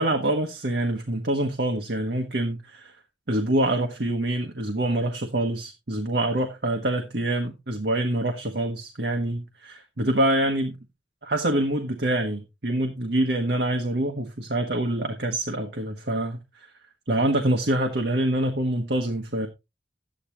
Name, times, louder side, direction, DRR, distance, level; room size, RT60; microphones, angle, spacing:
voice 1, 0.0-2.9 3.3-10.8 11.2-16.7 17.1-19.5, right 1 dB, 65° right, 1.4 m, -25 dB
11.5 x 9.1 x 2.9 m
head